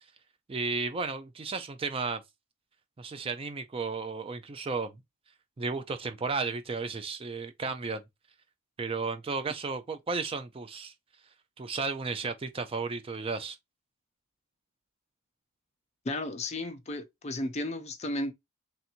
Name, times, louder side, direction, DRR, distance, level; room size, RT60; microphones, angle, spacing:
voice 1, 0.5-2.2 3.0-4.9 5.6-8.0 8.8-10.9 11.6-13.6, right 4 dB, 25° right, 0.4 m, -33 dB
voice 2, 16.0-18.3, left 1 dB, 30° left, 0.6 m, -34 dB
3.4 x 2.6 x 4.3 m
head